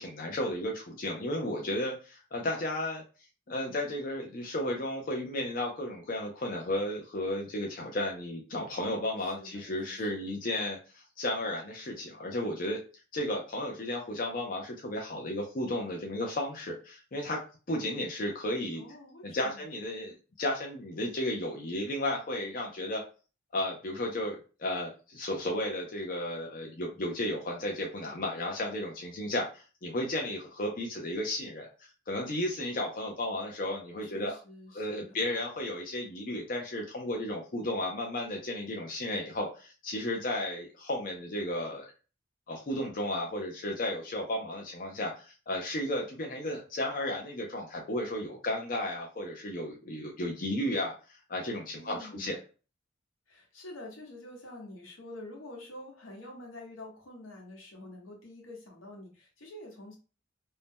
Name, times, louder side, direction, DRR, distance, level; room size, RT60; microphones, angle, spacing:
voice 1, 0.0-3.0 3.5-12.8 13.1-18.8 19.2-23.0 23.5-34.4 34.7-41.9 42.5-50.9 51.3-52.4, left 1 dB, 45° left, 0 dB, 0.5 m, -34 dB
voice 2, 9.2-10.3 18.7-19.6 34.0-35.2 51.7-52.4 53.3-60.0, left 1 dB, 85° left, 0 dB, 1.1 m, -47 dB
2.7 x 2.1 x 3.4 m, 0.35 s
head